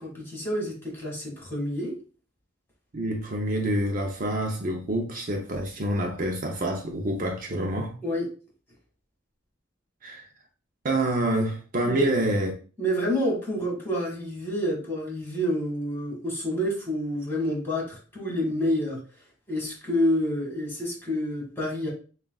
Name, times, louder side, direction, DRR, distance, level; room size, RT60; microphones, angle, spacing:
voice 1, 0.0-1.9 8.0-8.3 11.9-12.1 12.8-19.0 19.5-21.9, equal, 10° left, 1.8 m, -28 dB
voice 2, 2.9-7.9 10.0-10.3 10.8-12.5, right 1 dB, 45° right, 0.6 m, -27 dB
7.2 x 2.4 x 2.3 m
head